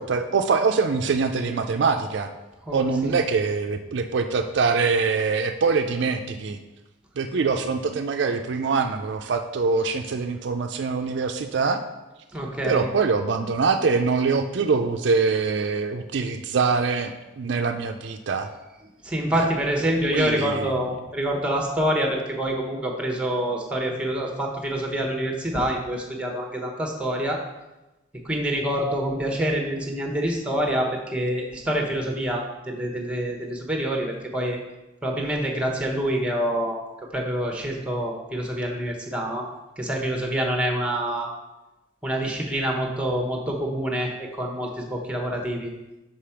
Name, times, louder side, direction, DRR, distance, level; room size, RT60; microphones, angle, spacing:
voice 1, 0.0-2.3 2.7-6.6 7.2-11.8 12.6-18.5 19.3-19.5 20.0-20.7, right 4 dB, 60° right, 6 dB, 0.4 m, -24 dB
voice 2, 12.3-12.9 19.0-27.4 28.2-34.6 35.0-36.8 37.1-39.5 39.8-41.3 42.0-45.7, right 1 dB, 5° right, 1 dB, 0.9 m, -26 dB
5.5 x 5.0 x 5.7 m, 1.0 s
head